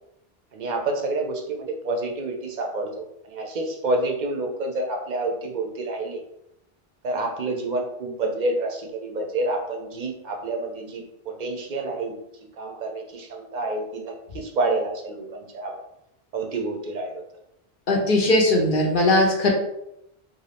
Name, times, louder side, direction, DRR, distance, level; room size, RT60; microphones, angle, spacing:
voice 1, 0.5-6.2 7.0-12.2 12.6-15.7 16.3-17.2, right 2 dB, 55° right, 2 dB, 0.6 m, -28 dB
voice 2, 17.9-19.5, left 1 dB, 60° left, 0 dB, 0.8 m, -19 dB
2.6 x 2.4 x 3.3 m, 0.80 s
omnidirectional pair, 1.0 m